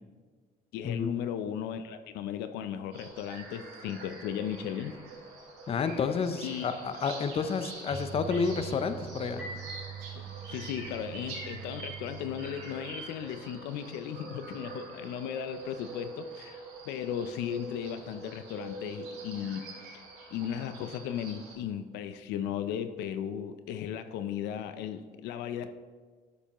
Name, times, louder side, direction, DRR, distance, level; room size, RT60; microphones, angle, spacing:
voice 1, 0.7-5.0 6.4-6.7 10.2-20.0 20.3-25.7, left 9 dB, 90° left, 10 dB, 0.5 m, -36 dB
sound 1, 2.9-21.5, right 3 dB, 85° right, 2.8 m, -45 dB
voice 2, 5.7-9.4, left 5 dB, 35° left, 10 dB, 0.6 m, -30 dB
sound 2, 7.9-13.0, right 7 dB, 5° right, 2.7 m, -43 dB
11.5 x 6.9 x 3.0 m, 1.5 s
cardioid pair, 110°, 17 cm